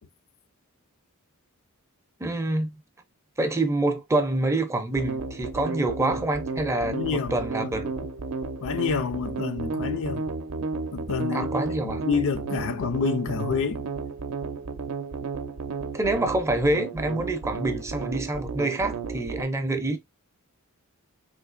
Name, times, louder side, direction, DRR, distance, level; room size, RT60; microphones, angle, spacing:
voice 1, 2.2-2.7 3.4-7.9 11.3-12.0 15.9-20.0, right 2 dB, 15° right, 0.4 m, -26 dB
sound 1, 5.0-19.4, right 4 dB, 80° right, 0.5 m, -33 dB
voice 2, 6.8-7.7 8.6-10.3 10.9-11.6 11.8-13.8, left 5 dB, 65° left, 0.4 m, -28 dB
3.8 x 2.7 x 2.4 m
head